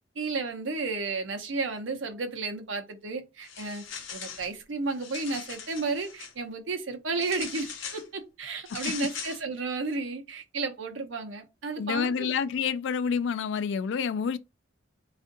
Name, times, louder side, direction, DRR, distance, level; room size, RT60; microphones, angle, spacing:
voice 1, 0.2-3.8 4.1-12.3, right 3 dB, 80° right, 0.7 m, -33 dB
sound 1, 3.4-4.5 4.9-6.3 7.2-8.1 8.7-9.4, left 6 dB, 85° left, 0.8 m, -40 dB
voice 2, 11.8-14.4, left 6 dB, 70° left, 0.3 m, -28 dB
2.6 x 2.5 x 3.7 m
head